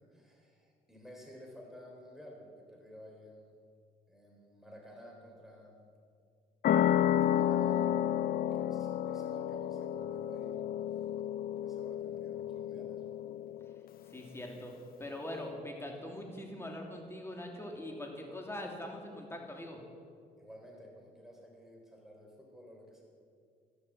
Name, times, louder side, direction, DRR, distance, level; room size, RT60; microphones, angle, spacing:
voice 1, 0.1-3.5 4.1-5.8 7.0-7.9 8.5-10.7 11.6-13.2 20.4-23.0, equal, ahead, -1 dB, 3.9 m, -53 dB
sound 1, 6.6-13.8, left 10 dB, 60° left, 0.5 m, -31 dB
voice 2, 14.0-14.7 15.0-19.8, left 1 dB, 15° left, 1 dB, 2.9 m, -42 dB
13.0 x 12.0 x 7.5 m, 2.3 s
cardioid pair, 95°, 17 cm